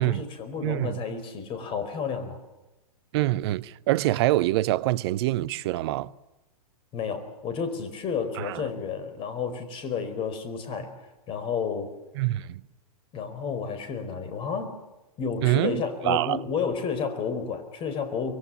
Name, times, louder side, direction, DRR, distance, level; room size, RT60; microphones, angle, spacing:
voice 1, 0.0-2.4 6.9-10.9 11.3-12.0 13.1-14.8 15.2-18.4, left 6 dB, 25° left, 4.5 m, -31 dB
voice 2, 0.6-1.0 3.1-6.1 8.4-8.6 12.2-12.6 15.4-16.4, right 16 dB, 40° right, 0.8 m, -25 dB
24.5 x 23.0 x 7.2 m
figure-of-eight pair, 105°, 19 cm